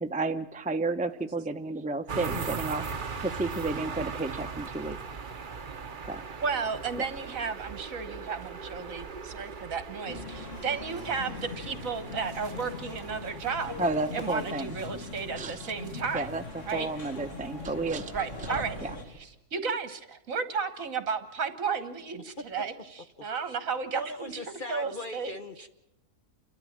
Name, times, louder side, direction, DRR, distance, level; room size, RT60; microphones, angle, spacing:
voice 1, 0.0-2.9 3.2-5.0 6.1-6.2 13.8-14.7 15.4-15.7 16.1-18.1 18.4-18.5 18.8-18.9, right 3 dB, 10° right, 6 dB, 0.3 m, -32 dB
sound 1, 2.1-19.3, right 5 dB, 40° right, 1.0 m, -40 dB
voice 2, 6.4-13.8 14.1-16.3 16.7-16.9 18.1-18.8 19.5-24.3 24.7-25.3, right 5 dB, 60° right, 10 dB, 1.9 m, -33 dB
sound 2, 10.1-19.0, left 3 dB, 55° left, 2.3 m, -41 dB
voice 3, 23.9-25.7, left 1 dB, 35° left, 7 dB, 1.1 m, -39 dB
29.5 x 13.0 x 7.4 m, 0.92 s
omnidirectional pair, 1.6 m